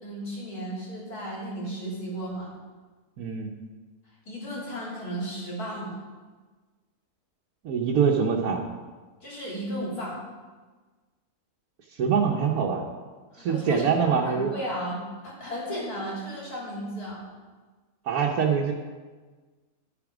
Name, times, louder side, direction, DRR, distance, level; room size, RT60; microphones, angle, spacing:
voice 1, 0.0-2.5 4.3-6.0 9.2-10.2 13.3-17.2, equal, 80° left, -5 dB, 3.6 m, -34 dB
voice 2, 3.2-3.5 7.6-8.6 11.9-12.8 13.4-14.5 18.1-18.7, right 6 dB, 75° right, -1 dB, 1.3 m, -24 dB
11.5 x 7.1 x 4.9 m, 1.4 s
omnidirectional pair, 1.6 m